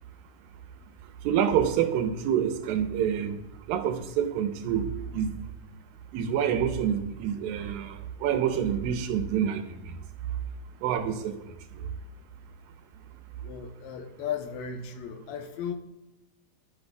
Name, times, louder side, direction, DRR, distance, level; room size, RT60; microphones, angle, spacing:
voice 1, 1.2-3.4 3.7-5.3 6.1-9.6 10.8-11.3, right 9 dB, 80° right, 7 dB, 2.4 m, -27 dB
voice 2, 13.4-15.7, left 7 dB, 80° left, 5 dB, 2.7 m, -35 dB
12.0 x 7.9 x 2.3 m, 0.95 s
omnidirectional pair, 4.4 m